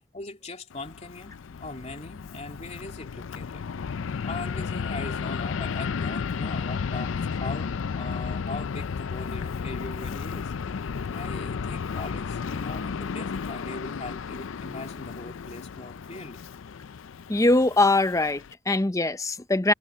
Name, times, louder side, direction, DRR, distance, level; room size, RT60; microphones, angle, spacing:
voice 1, 0.1-3.6 4.2-16.4, left 2 dB, 35° left, 3.1 m, -40 dB
Fixed-wing aircraft airplane, 0.7-18.5, left 5 dB, 85° left, 0.5 m, -33 dB
voice 2, 17.3-19.7, left 2 dB, 15° left, 0.6 m, -22 dB
head